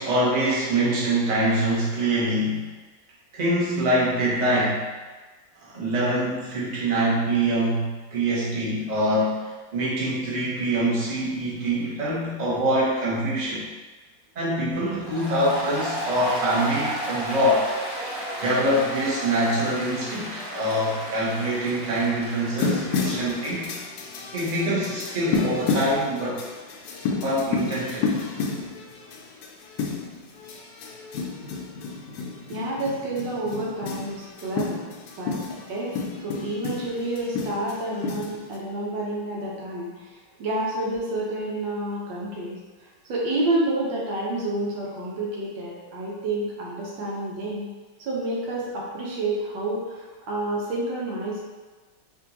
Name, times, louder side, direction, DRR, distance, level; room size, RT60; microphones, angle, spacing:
voice 1, 0.0-2.7 3.3-4.8 5.6-13.6 14.3-17.7 18.4-23.7 24.3-26.4 27.2-28.1, right 1 dB, 30° right, -7 dB, 0.8 m, -24 dB
Applause, 15.0-23.7, right 1 dB, 30° left, 0.4 m, -33 dB
sound 1, 22.6-38.6, left 4 dB, 80° left, 1.2 m, -31 dB
voice 2, 32.5-34.8 35.2-35.4 35.7-40.1 40.4-47.6 48.0-51.4, right 1 dB, 85° right, -4 dB, 1.6 m, -29 dB
4.9 x 2.7 x 2.8 m, 1.3 s
omnidirectional pair, 2.0 m